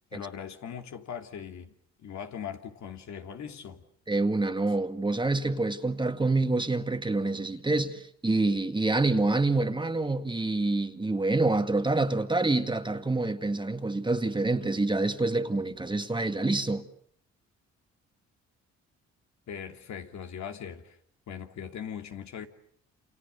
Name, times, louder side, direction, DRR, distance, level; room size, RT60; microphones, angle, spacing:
voice 1, 0.1-1.7 2.0-3.8 19.5-21.0 21.3-22.5, left 8 dB, 65° left, 3.0 m, -40 dB
voice 2, 4.1-16.9, right 2 dB, 15° right, 1.9 m, -27 dB
29.0 x 28.0 x 6.9 m
cardioid pair, 90°, 30 cm